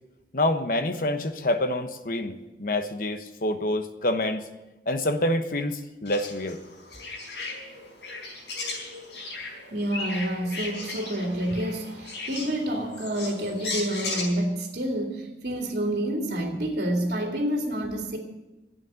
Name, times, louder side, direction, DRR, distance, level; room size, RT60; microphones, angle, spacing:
voice 1, 0.3-4.4 4.9-6.6, left 1 dB, 50° left, 8 dB, 1.0 m, -27 dB
sound 1, 6.1-14.2, left 3 dB, 75° left, 4.8 m, -36 dB
voice 2, 9.7-18.2, right 1 dB, 60° right, 1 dB, 2.3 m, -28 dB
11.5 x 8.4 x 9.4 m, 1.0 s
head